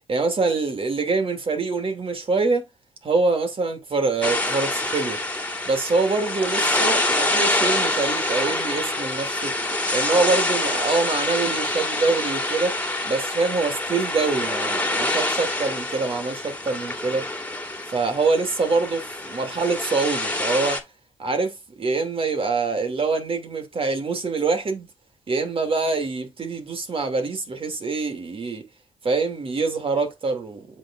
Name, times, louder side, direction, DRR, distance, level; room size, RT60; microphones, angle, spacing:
voice 1, 0.1-2.7 3.0-5.2 5.7-9.6 9.9-12.8 13.0-17.3 17.9-20.8 21.2-24.9 25.3-28.6 29.0-30.7, right 3 dB, 45° right, 2.8 m, -25 dB
sound 1, 4.2-20.8, left 2 dB, 10° left, 2.2 m, -26 dB
7.4 x 6.6 x 2.6 m
hypercardioid pair, 40°, 13 cm